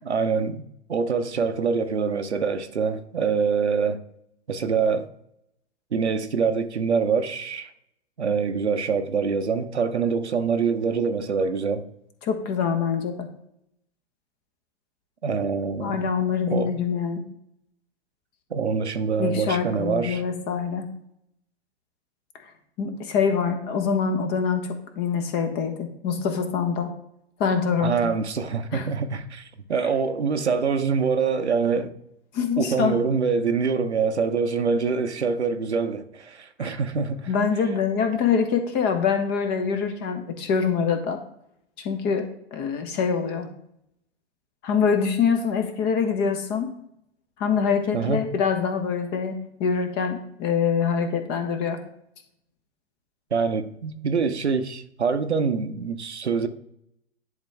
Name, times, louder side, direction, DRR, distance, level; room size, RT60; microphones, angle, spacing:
voice 1, 0.1-0.6 0.9-4.0 4.5-5.1 5.9-7.7 8.2-11.8 15.2-16.1 16.5-16.8 18.5-20.2 27.8-31.9 32.6-37.3 47.9-48.3 53.3-56.5, right 5 dB, 75° right, 0.8 m, -25 dB
voice 2, 12.2-13.3 15.8-17.2 19.2-20.9 22.8-24.7 25.0-26.9 27.4-28.1 28.7-28.9 32.3-33.0 36.6-36.8 37.3-41.2 41.8-43.5 44.6-46.7 47.4-51.8, left 6 dB, 30° left, 1.1 m, -25 dB
10.5 x 3.7 x 3.4 m
figure-of-eight pair, 100°, 34 cm